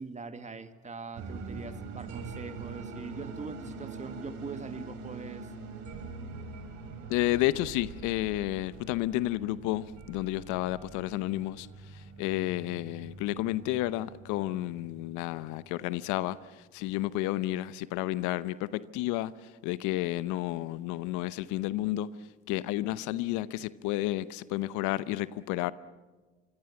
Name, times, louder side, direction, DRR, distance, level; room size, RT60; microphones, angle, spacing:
voice 1, 0.0-5.5, right 4 dB, 20° right, 1.9 m, -42 dB
sound 1, 1.1-16.3, right 4 dB, 60° right, 4.3 m, -44 dB
voice 2, 7.1-11.7 11.9-16.4 16.7-19.3 19.6-22.1 22.5-25.7, left 16 dB, 65° left, 0.9 m, -31 dB
26.0 x 23.5 x 7.2 m
hypercardioid pair, 75°, 31 cm